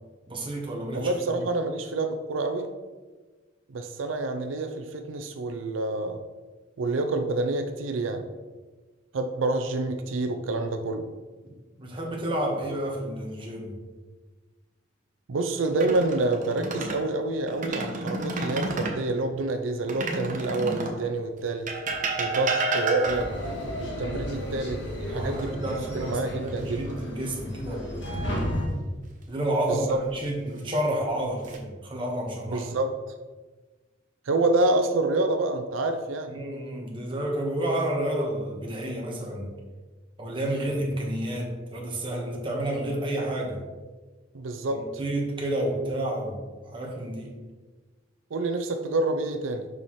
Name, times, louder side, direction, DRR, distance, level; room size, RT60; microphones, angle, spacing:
voice 1, 0.3-1.4 11.8-13.8 25.1-28.3 29.3-32.7 36.3-39.5 40.2-43.6 44.7-47.3, right 1 dB, 25° right, -1 dB, 1.3 m, -30 dB
voice 2, 0.9-2.7 3.7-6.2 6.8-8.3 9.1-11.1 15.3-21.7 22.2-23.3 23.8-25.6 25.9-26.8 29.7-30.0 32.5-32.9 34.3-36.3 44.3-44.9 48.3-49.7, right 2 dB, 90° right, 7 dB, 0.5 m, -27 dB
sound 1, 15.6-17.0 17.5-19.0 19.9-21.0 21.7-23.5 25.4-26.1 26.5-26.7 29.6-30.2 30.9-31.6, right 2 dB, 45° right, 0.9 m, -31 dB
sound 2, 23.0-28.7, equal, 65° left, 1.6 m, -33 dB
6.7 x 5.7 x 3.1 m, 1.3 s
head